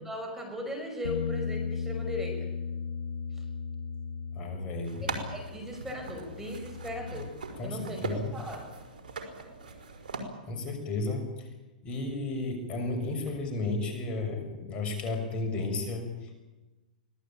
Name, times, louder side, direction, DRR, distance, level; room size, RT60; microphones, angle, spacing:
voice 1, 0.0-2.5 5.0-7.3 7.6-8.7, left 1 dB, 5° right, 3 dB, 5.8 m, -38 dB
Bass guitar, 1.0-7.3, left 5 dB, 85° left, 2.2 m, -36 dB
voice 2, 4.4-5.0 7.6-8.3 10.5-11.5 11.8-16.4, left 2 dB, 25° left, 3 dB, 6.4 m, -33 dB
sound 1, 4.8-10.2, right 4 dB, 85° right, 4.7 m, -40 dB
25.0 x 18.0 x 8.9 m, 1.1 s
hypercardioid pair, 130°, 5 cm